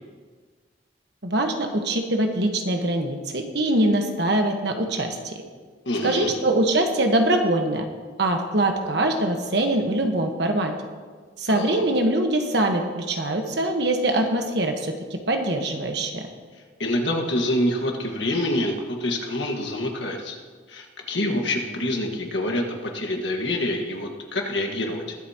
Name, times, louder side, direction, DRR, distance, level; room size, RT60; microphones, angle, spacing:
voice 1, 1.2-5.3 6.0-7.9 8.2-10.7 11.4-16.2, right 1 dB, 65° right, 4 dB, 1.3 m, -23 dB
voice 2, 5.8-6.3 11.5-11.8 16.8-20.4 20.7-25.2, left 1 dB, 70° left, 2 dB, 1.6 m, -26 dB
21.5 x 8.2 x 2.9 m, 1.5 s
head